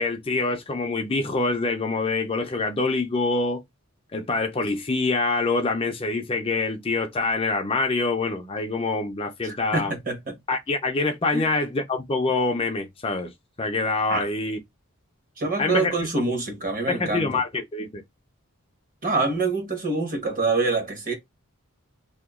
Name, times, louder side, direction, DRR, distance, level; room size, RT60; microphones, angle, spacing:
voice 1, 0.0-3.6 4.1-9.9 10.5-14.6 15.6-15.9 16.9-18.0, left 3 dB, 25° left, 0.4 m, -25 dB
voice 2, 9.4-10.3 11.3-11.4 14.1-14.2 15.4-17.4 19.0-21.1, right 3 dB, 40° right, 1.2 m, -26 dB
2.9 x 2.2 x 3.5 m
head